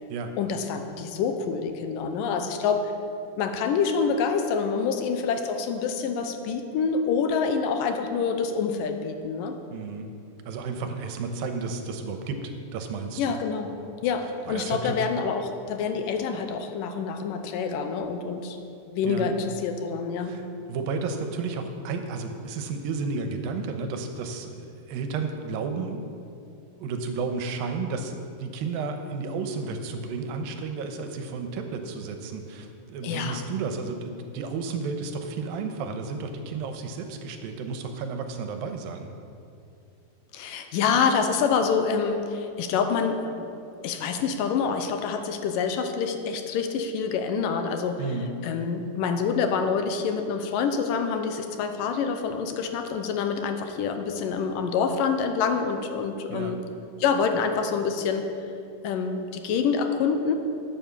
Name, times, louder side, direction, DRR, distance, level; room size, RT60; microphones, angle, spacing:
voice 1, 0.4-2.9 3.4-9.6 13.2-13.7 14.0-18.6 18.9-20.4 33.0-33.4 40.3-43.5 43.8-48.0 48.4-56.6 57.0-58.3 58.8-60.3, left 5 dB, 75° left, 7 dB, 2.4 m, -26 dB
voice 2, 9.7-10.1 10.5-13.4 14.5-15.0 19.0-19.3 20.2-26.2 26.8-39.1 48.0-48.3 56.3-56.5, right 4 dB, 85° right, 6 dB, 2.7 m, -32 dB
11.5 x 9.1 x 7.1 m, 2.5 s
omnidirectional pair, 4.1 m